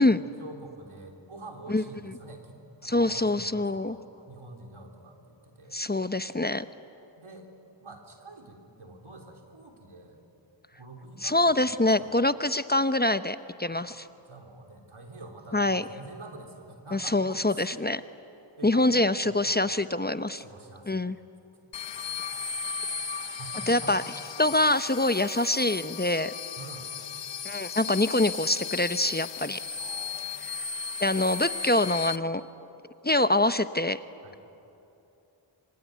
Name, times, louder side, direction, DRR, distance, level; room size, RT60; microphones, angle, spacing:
voice 1, 0.0-5.8 7.2-7.5 7.8-10.2 10.7-12.1 13.6-17.7 18.6-19.4 20.4-21.1 21.9-24.0 26.6-26.9 29.8-30.5 34.2-34.4, right 2 dB, 80° right, 2 dB, 3.7 m, -47 dB
voice 2, 1.7-2.1 2.8-4.0 5.7-6.6 11.2-14.1 15.5-15.8 16.9-18.0 18.6-20.4 20.9-21.2 23.7-24.0 24.4-26.3 27.4-29.6 31.0-32.4 33.0-34.0, left 2 dB, 20° left, 12 dB, 0.8 m, -25 dB
sound 1, 21.7-32.2, left 6 dB, 65° left, 0.9 m, -36 dB
26.5 x 23.5 x 9.4 m, 2.8 s
cardioid pair, 40°, 48 cm